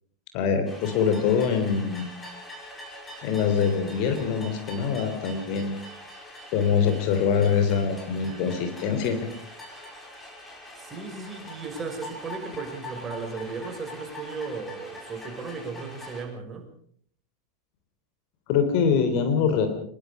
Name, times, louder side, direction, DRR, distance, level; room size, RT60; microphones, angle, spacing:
voice 1, 0.3-2.1 3.2-5.8 6.5-9.3 18.5-19.7, left 6 dB, 45° left, 7 dB, 3.5 m, -24 dB
sound 1, 0.7-16.2, left 1 dB, 10° left, 5.8 m, -43 dB
voice 2, 10.8-16.6, right 4 dB, 20° right, 4 dB, 5.5 m, -36 dB
24.0 x 22.0 x 5.0 m, 0.62 s
figure-of-eight pair, 90°, 0 cm